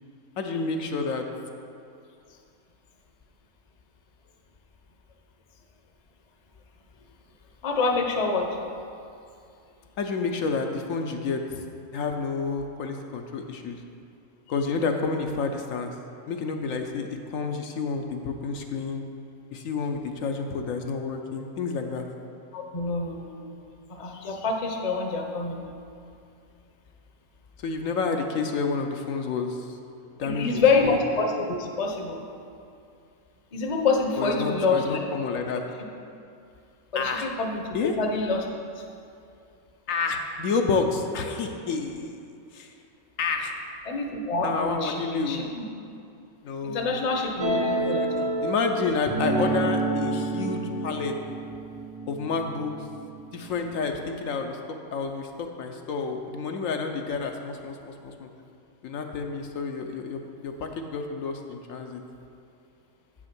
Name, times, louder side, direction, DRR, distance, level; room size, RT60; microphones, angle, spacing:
voice 1, 0.4-1.2 10.0-11.6 11.9-13.8 14.5-15.9 16.3-19.0 19.5-22.1 27.6-29.8 30.2-31.0 34.2-35.6 36.9-37.3 37.7-37.9 39.9-42.2 42.5-42.7 43.2-43.6 44.4-45.4 46.4-47.1 47.6-51.1 52.1-52.8 53.3-54.6 54.9-58.3 58.8-62.0, left 4 dB, 70° left, 4 dB, 1.0 m, -29 dB
voice 2, 7.6-8.6 22.5-23.4 23.9-25.6 30.2-32.2 33.5-35.0 35.3-35.4 36.9-38.5 43.9-45.6 46.6-48.3, left 3 dB, 35° left, 2 dB, 0.7 m, -26 dB
sound 1, 47.4-53.5, right 2 dB, 35° right, 0.4 m, -29 dB
7.8 x 6.2 x 5.9 m, 2.5 s
omnidirectional pair, 1.5 m